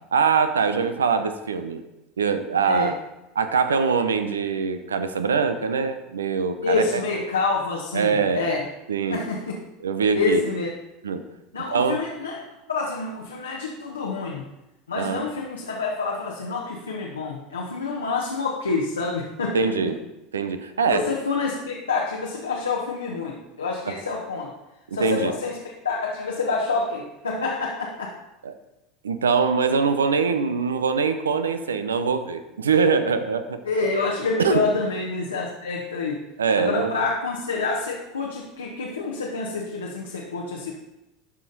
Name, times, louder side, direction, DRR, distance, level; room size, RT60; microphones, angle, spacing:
voice 1, 0.1-1.8 2.2-3.0 3.4-6.8 7.9-8.5 8.9-9.2 9.8-10.4 11.0-11.2 11.7-12.0 14.9-15.2 19.5-20.0 20.3-21.0 23.9-24.0 25.0-25.3 28.4-28.5 29.0-33.6 34.4-34.6 36.4-36.9, right 5 dB, 85° right, 10 dB, 0.6 m, -23 dB
voice 2, 6.6-8.7 9.1-9.6 10.1-10.7 11.5-12.4 12.7-14.5 14.9-19.9 20.9-24.5 24.9-25.6 25.8-28.1 33.6-36.2 36.6-40.7, left 4 dB, 85° left, -2 dB, 1.0 m, -27 dB
12.5 x 5.1 x 4.0 m, 0.94 s
hypercardioid pair, 75°, 0 cm